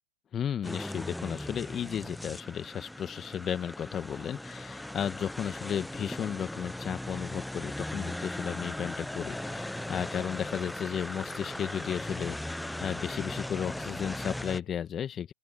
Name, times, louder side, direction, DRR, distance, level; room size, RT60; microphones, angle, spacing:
voice 1, 0.3-15.3, left 9 dB, 25° left, 2.2 m, -34 dB
sound 1, 0.6-14.6, left 1 dB, 5° left, 1.1 m, -38 dB
sound 2, 9.2-14.8, left 13 dB, 60° left, 4.8 m, -58 dB
open air
figure-of-eight pair, 95°, 0 cm